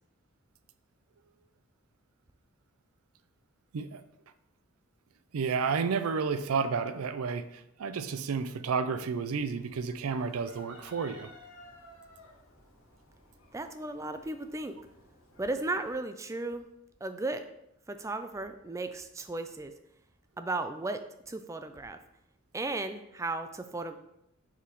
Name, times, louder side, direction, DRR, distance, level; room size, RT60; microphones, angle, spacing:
voice 1, 5.3-11.3, right 5 dB, 90° right, 12 dB, 0.4 m, -31 dB
Chicken rooster, 9.2-15.9, left 1 dB, 80° left, 1.6 m, -55 dB
voice 2, 13.5-14.7 15.4-16.6 17.0-17.5 17.9-19.7 20.4-21.0 21.3-22.0 22.5-24.0, right 2 dB, 15° right, 8 dB, 0.3 m, -35 dB
6.7 x 4.9 x 3.0 m, 0.80 s
head